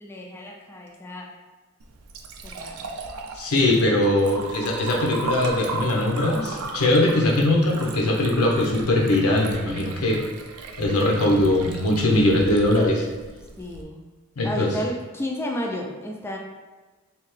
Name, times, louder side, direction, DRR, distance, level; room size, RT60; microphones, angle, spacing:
voice 1, 0.0-1.3 2.4-2.9 13.4-14.0 14.4-16.4, equal, 10° left, 0 dB, 0.3 m, -32 dB
Liquid, 1.8-13.8, right 3 dB, 75° right, 0.4 m, -36 dB
voice 2, 3.4-10.2 10.8-13.1 14.4-14.7, left 1 dB, 85° left, 0 dB, 0.7 m, -21 dB
3.4 x 2.8 x 3.1 m, 1.3 s
head